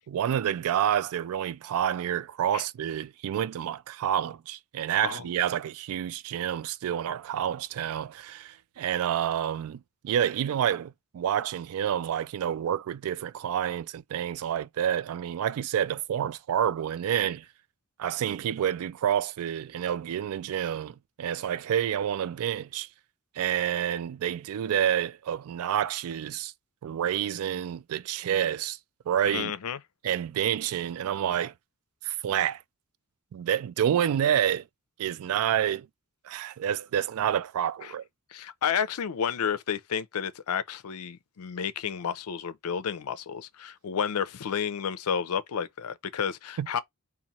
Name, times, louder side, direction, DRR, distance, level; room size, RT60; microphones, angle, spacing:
voice 1, 0.1-17.5 18.0-22.9 23.4-26.5 26.8-28.8 29.1-29.5 30.0-31.5 32.0-32.6 33.3-34.6 35.0-35.9 36.2-38.0 46.6-46.7, right 9 dB, 70° right, 0.3 m, -28 dB
voice 2, 29.2-29.8 37.8-37.9 38.3-46.8, left 7 dB, 70° left, 0.5 m, -31 dB
2.9 x 2.5 x 4.0 m
head